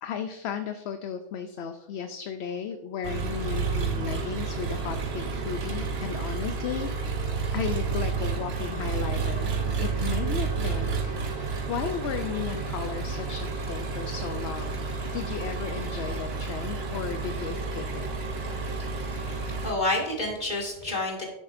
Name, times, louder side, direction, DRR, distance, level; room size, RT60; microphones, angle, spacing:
voice 1, 0.0-7.1 7.5-9.5 9.8-14.8 15.1-18.1, left 7 dB, 70° left, 8 dB, 0.8 m, -35 dB
Engine, 3.0-19.7, right 4 dB, 65° right, 1.2 m, -30 dB
voice 2, 19.0-21.3, left 2 dB, 40° left, -1 dB, 2.3 m, -30 dB
10.5 x 8.5 x 2.6 m, 0.96 s
omnidirectional pair, 1.2 m